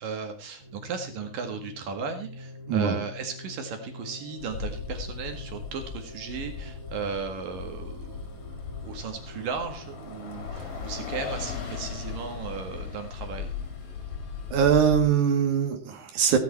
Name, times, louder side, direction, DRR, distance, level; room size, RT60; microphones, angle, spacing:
voice 1, 0.0-8.5 8.8-13.5, right 5 dB, 80° right, 5 dB, 3.5 m, -36 dB
sound 1, 0.6-15.1, equal, 30° right, 7.9 m, -46 dB
Bus, 4.4-15.1, left 6 dB, 45° left, 3.7 m, -37 dB
voice 2, 14.5-16.4, right 7 dB, 65° right, 5 dB, 3.6 m, -22 dB
16.5 x 11.5 x 4.3 m, 0.33 s
omnidirectional pair, 3.8 m